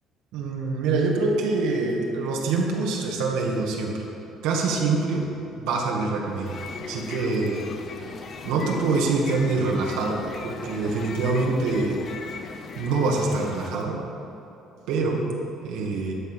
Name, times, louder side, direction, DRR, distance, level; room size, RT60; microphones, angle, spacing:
voice 1, 0.3-4.0 4.4-5.3 5.6-6.6 6.9-7.7 8.4-12.0 12.8-14.0 14.9-15.2 15.6-16.1, right 3 dB, 90° right, -1 dB, 1.9 m, -25 dB
sound 1, 6.3-13.9, left 5 dB, 35° left, 0.7 m, -39 dB
12.0 x 7.2 x 6.2 m, 3.0 s
cardioid pair, 160°, 0 cm